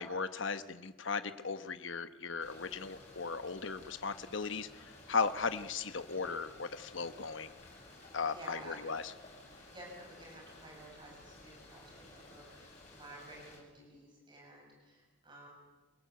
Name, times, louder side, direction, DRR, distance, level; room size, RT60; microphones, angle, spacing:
voice 1, 0.0-7.5 8.1-9.1, left 5 dB, 65° left, 11 dB, 1.1 m, -37 dB
sound 1, 2.4-13.6, left 2 dB, 35° left, 7.3 m, -55 dB
voice 2, 8.3-8.9 9.7-15.5, right 1 dB, 20° right, -1 dB, 6.9 m, -52 dB
27.0 x 17.5 x 8.2 m, 1.2 s
head